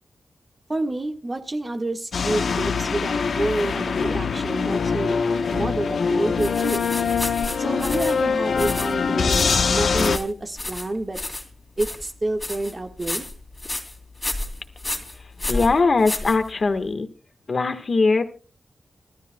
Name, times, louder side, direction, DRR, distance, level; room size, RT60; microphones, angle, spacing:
voice 1, 0.7-5.2 5.5-6.8 7.6-11.2 11.8-13.2, right 2 dB, 30° right, 5 dB, 1.6 m, -28 dB
sound 1, 2.1-10.2, left 5 dB, 80° left, 1.0 m, -23 dB
sound 2, 6.4-16.9, left 2 dB, 20° left, 2.6 m, -32 dB
voice 2, 15.5-17.1 17.5-18.2, left 3 dB, 55° left, 8 dB, 1.4 m, -20 dB
25.0 x 12.5 x 2.3 m, 0.35 s
wide cardioid pair, 95°, 0 cm